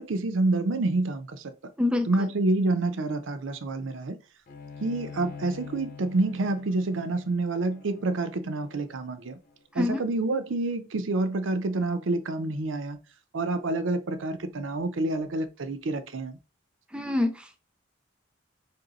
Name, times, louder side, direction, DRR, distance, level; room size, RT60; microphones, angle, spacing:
voice 1, 0.0-1.5 2.1-4.2 4.8-9.4 9.7-13.0 13.3-16.4, right 2 dB, 85° right, 0.6 m, -28 dB
Bowed string instrument, 4.5-9.8, left 5 dB, 45° left, 0.8 m, -45 dB
voice 2, 16.9-17.6, left 2 dB, 5° right, 0.4 m, -26 dB
3.4 x 2.7 x 3.9 m
head